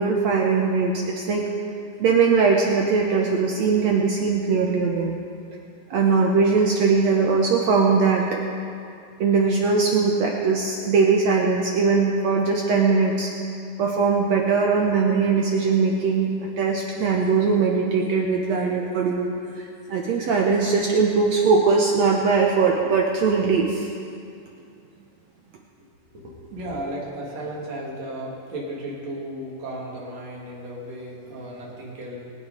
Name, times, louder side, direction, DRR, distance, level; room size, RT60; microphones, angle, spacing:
voice 1, 0.0-1.5 2.0-5.2 5.9-8.4 9.2-13.3 13.8-19.3 19.6-23.9, right 4 dB, 75° right, 0 dB, 1.6 m, -20 dB
voice 2, 26.1-32.3, right 1 dB, 45° right, -4 dB, 3.5 m, -34 dB
23.0 x 9.4 x 5.0 m, 2.4 s
omnidirectional pair, 4.4 m